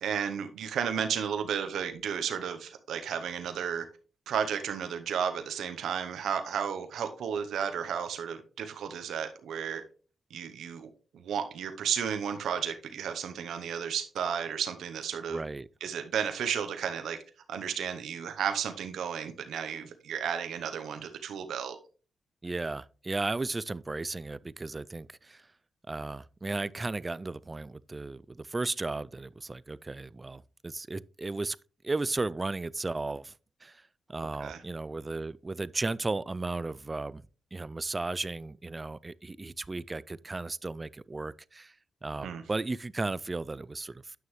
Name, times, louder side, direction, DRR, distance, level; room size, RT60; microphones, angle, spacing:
voice 1, 0.0-3.9 4.3-9.8 10.3-15.4 15.8-17.2 17.5-21.8 34.4-34.6 42.2-42.4, right 8 dB, 80° right, 0.8 m, -33 dB
voice 2, 15.3-15.7 22.4-25.4 25.9-31.6 31.8-33.3 33.6-33.8 34.1-37.2 37.5-41.7 42.0-44.2, right 3 dB, 25° right, 0.3 m, -35 dB
9.2 x 6.3 x 3.1 m
cardioid pair, 70°, 0 cm